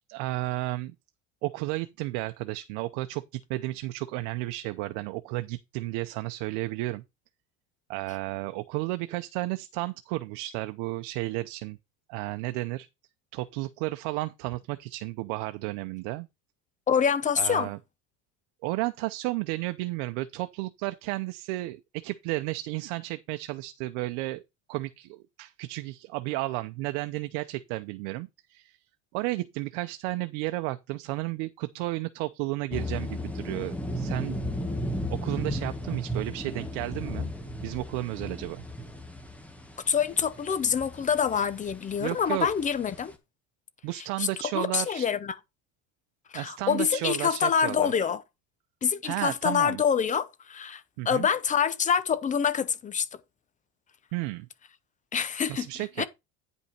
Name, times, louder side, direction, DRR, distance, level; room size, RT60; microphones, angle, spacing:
voice 1, 0.1-0.9 1.4-7.0 7.9-11.8 12.1-12.9 13.3-16.3 17.4-17.8 18.6-24.4 24.7-28.8 29.1-34.4 35.1-37.3 37.6-38.6 42.0-42.5 43.8-45.1 46.3-48.1 49.0-49.8 51.0-51.3 54.1-54.5 55.5-56.1, right 19 dB, 80° right, 0.8 m, -33 dB
voice 2, 16.9-17.7 39.9-43.1 44.2-44.3 44.5-45.4 46.3-48.2 48.8-53.1 55.1-55.7 56.0-56.1, left 7 dB, 20° left, 0.6 m, -26 dB
sound 1, 32.7-43.1, equal, 5° left, 1.3 m, -35 dB
9.7 x 5.5 x 4.3 m
cardioid pair, 155°, 35 cm